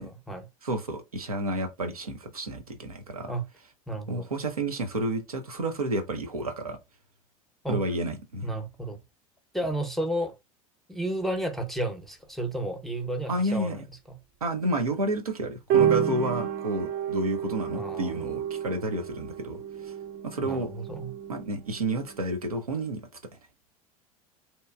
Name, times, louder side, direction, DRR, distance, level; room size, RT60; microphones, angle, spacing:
voice 1, 0.0-0.5 3.3-3.5 3.9-4.3 7.6-7.8 8.4-9.0 9.5-10.3 10.9-13.8 14.1-14.2 17.7-18.2 20.4-21.1, right 1 dB, ahead, 0.6 m, -32 dB
voice 2, 0.6-3.3 4.1-6.8 7.7-8.5 13.3-13.8 14.4-19.9 20.2-20.7 21.3-23.0, right 1 dB, 90° right, 0.5 m, -30 dB
sound 1, 15.7-22.2, right 9 dB, 45° right, 0.6 m, -30 dB
2.8 x 2.2 x 2.2 m
figure-of-eight pair, 75°, 18 cm